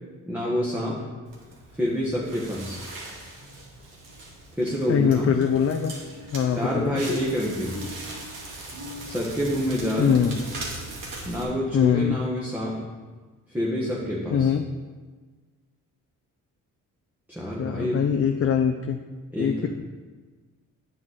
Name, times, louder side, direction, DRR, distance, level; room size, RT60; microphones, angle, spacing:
voice 1, 0.3-1.1 1.7-2.9 4.5-5.4 6.5-7.9 9.0-10.2 11.2-12.9 13.5-14.5 17.3-18.1 19.3-19.7, equal, 5° right, -5 dB, 1.4 m, -27 dB
Crackle, 1.2-11.4, right 1 dB, 70° right, 2.4 m, -39 dB
voice 2, 4.9-5.9 6.3-7.0 10.0-10.4 11.7-12.2 14.3-14.6 17.6-19.0 19.4-19.7, left 8 dB, 45° left, 5 dB, 0.6 m, -22 dB
8.8 x 7.9 x 4.1 m, 1.4 s
cardioid pair, 95°, 33 cm